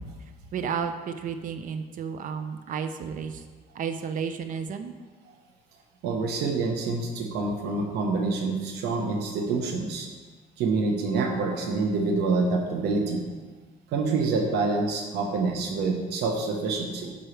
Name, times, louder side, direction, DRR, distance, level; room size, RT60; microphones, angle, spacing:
voice 1, 0.5-3.4 3.7-4.9, right 6 dB, 50° right, 8 dB, 0.6 m, -32 dB
voice 2, 6.0-10.1 10.6-13.3 13.9-17.1, right 3 dB, 80° right, 3 dB, 1.2 m, -27 dB
9.2 x 5.6 x 3.3 m, 1.4 s
cardioid pair, 110°, 17 cm